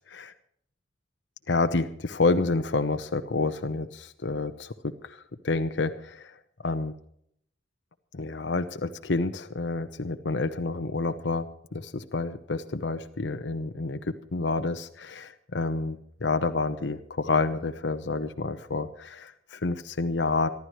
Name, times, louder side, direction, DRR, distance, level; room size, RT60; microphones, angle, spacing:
voice 1, 1.5-6.9 8.1-20.5, left 3 dB, 85° left, 7 dB, 0.9 m, -29 dB
26.0 x 12.0 x 3.1 m, 0.70 s
head